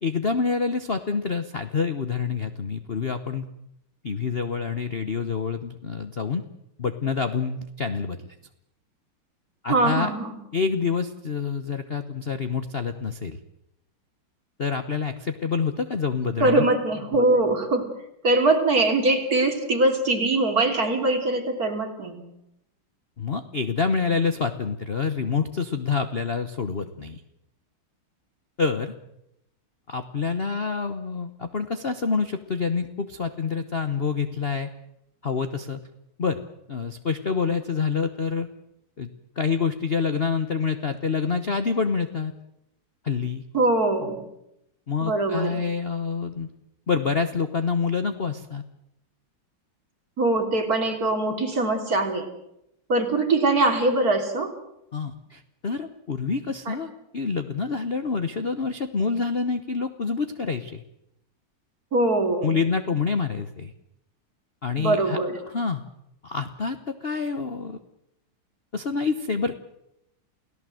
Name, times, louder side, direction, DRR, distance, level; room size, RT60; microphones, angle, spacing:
voice 1, 0.0-3.4 4.0-6.4 6.8-8.3 9.6-10.1 10.5-13.4 14.6-16.6 23.2-27.2 28.6-28.9 29.9-34.7 35.2-35.8 36.2-36.4 36.7-38.5 39.0-39.1 39.4-42.3 43.0-43.4 44.9-46.5 46.9-48.6 54.9-56.9 57.1-60.8 62.4-63.7 64.6-65.2 65.5-65.8 66.2-67.8 68.7-69.5, left 5 dB, 40° left, 9 dB, 0.9 m, -27 dB
voice 2, 9.7-10.4 16.4-17.9 18.2-22.2 43.5-44.2 45.0-45.6 50.2-52.3 52.9-54.5 56.7-56.8 61.9-62.6 64.8-65.4, right 2 dB, 45° right, 3 dB, 3.6 m, -22 dB
29.5 x 17.0 x 7.7 m, 0.84 s
omnidirectional pair, 2.3 m